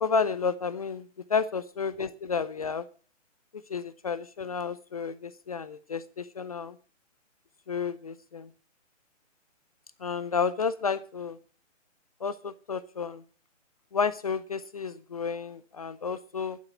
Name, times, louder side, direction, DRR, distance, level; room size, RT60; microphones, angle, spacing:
voice 1, 0.0-2.9 3.5-6.8 7.7-8.5 10.0-11.4 12.2-13.2 13.9-16.6, left 5 dB, 30° left, 15 dB, 0.5 m, -31 dB
11.5 x 8.8 x 7.0 m, 0.40 s
figure-of-eight pair, 135°, 37 cm